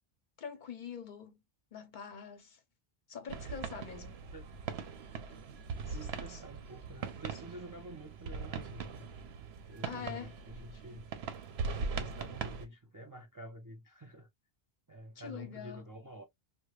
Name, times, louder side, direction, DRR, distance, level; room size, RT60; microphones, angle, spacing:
voice 1, 0.4-1.4 1.7-2.6 3.1-4.2 5.3-5.4 9.8-10.3 15.2-15.9, left 7 dB, 55° left, 0.7 m, -44 dB
sound 1, 3.3-12.7, right 5 dB, 85° right, 0.9 m, -41 dB
voice 2, 5.7-9.1 9.7-11.1 11.9-14.3 14.9-16.3, right 1 dB, 30° right, 0.4 m, -49 dB
4.8 x 2.2 x 2.3 m
omnidirectional pair, 1.0 m